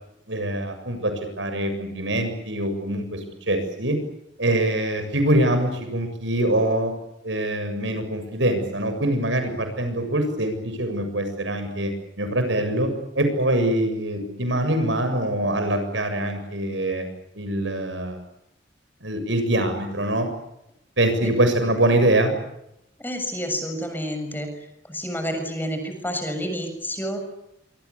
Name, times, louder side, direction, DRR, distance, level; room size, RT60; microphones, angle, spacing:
voice 1, 0.3-4.0 4.4-6.9 7.2-11.9 12.2-17.1 17.3-18.2 19.0-20.3 21.0-22.3, right 1 dB, 80° right, 8 dB, 7.3 m, -24 dB
voice 2, 23.0-27.2, equal, 10° left, 6 dB, 7.0 m, -29 dB
26.5 x 24.5 x 8.6 m, 0.82 s
head